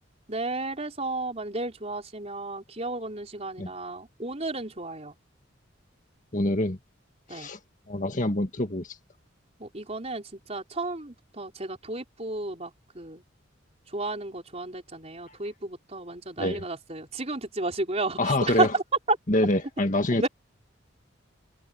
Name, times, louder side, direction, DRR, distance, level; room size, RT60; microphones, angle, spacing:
voice 1, 0.3-5.2 7.3-7.5 9.6-13.2 13.9-19.2 20.2-20.3, right 2 dB, 35° right, 4.4 m, -32 dB
voice 2, 6.3-6.8 7.3-7.6 7.9-8.9 16.4-16.6 18.2-18.7 19.3-20.3, left 1 dB, 40° left, 1.9 m, -25 dB
head